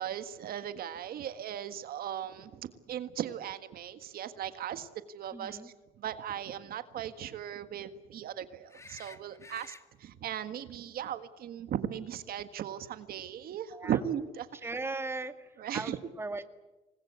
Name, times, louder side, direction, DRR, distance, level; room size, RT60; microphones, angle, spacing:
voice 1, 0.0-4.9 5.1-14.5 15.6-16.0, right 10 dB, 60° right, 11 dB, 1.6 m, -37 dB
voice 2, 5.3-5.7 9.5-9.6 13.7-14.0 14.6-16.4, right 3 dB, 15° right, 8 dB, 2.0 m, -38 dB
sound 1, 8.7-9.8 12.7-12.8, left 3 dB, 15° left, 1.8 m, -51 dB
27.5 x 21.0 x 8.3 m, 1.1 s
cardioid pair, 110°, 17 cm